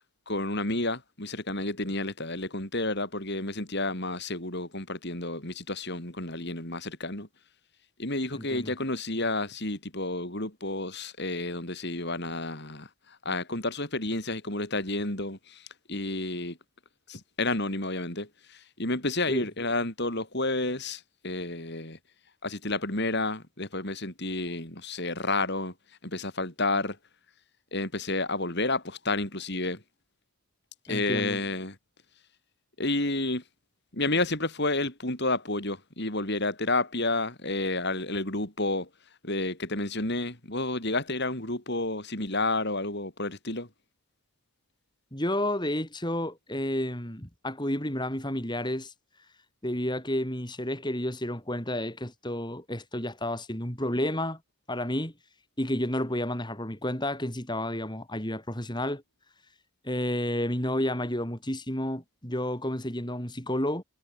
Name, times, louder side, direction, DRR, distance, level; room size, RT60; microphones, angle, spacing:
voice 1, 0.3-7.3 8.0-16.6 17.1-22.0 22.4-25.7 26.0-27.0 27.7-29.8 30.9-31.8 32.8-33.4 33.9-38.9 39.2-43.7, left 2 dB, 50° left, 4.8 m, -30 dB
voice 2, 8.3-8.7 19.3-19.5 30.9-31.4 45.1-48.9 49.6-54.4 54.7-55.1 55.6-59.0 59.8-63.8, left 1 dB, 20° left, 5.5 m, -31 dB
head